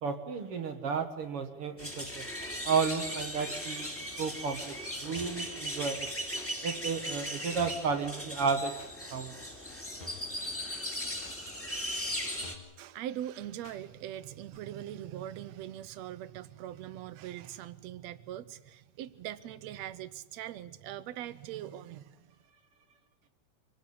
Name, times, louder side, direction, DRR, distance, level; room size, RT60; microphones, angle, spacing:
voice 1, 0.0-2.3 2.6-3.9 4.2-6.1 6.6-8.8 9.1-9.3, right 5 dB, 55° right, 8 dB, 2.1 m, -32 dB
sound 1, 1.8-12.5, equal, 5° left, 2.4 m, -38 dB
sound 2, 5.2-5.5 6.4-6.5 7.3-7.4 7.6-7.9 8.8-9.0 9.7-9.8 10.0-10.4 11.2-11.4 12.1-12.2 12.4-12.8 13.6-13.8 14.5-14.6, left 4 dB, 45° left, 2.7 m, -50 dB
voice 2, 12.8-22.4, right 12 dB, 70° right, 15 dB, 2.0 m, -42 dB
25.0 x 17.5 x 8.6 m, 1.1 s
omnidirectional pair, 3.3 m